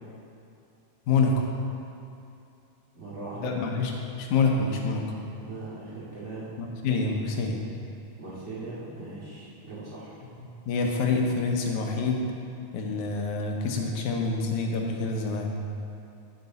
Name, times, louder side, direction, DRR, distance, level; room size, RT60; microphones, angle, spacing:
voice 1, 1.1-1.4 3.4-5.1 6.6-7.6 10.7-12.2 12.7-15.5, left 4 dB, 85° left, 1 dB, 2.3 m, -26 dB
voice 2, 2.9-3.6 5.4-6.5 8.2-10.2, right 3 dB, 25° right, -10 dB, 2.1 m, -39 dB
14.0 x 4.8 x 4.0 m, 2.6 s
omnidirectional pair, 3.3 m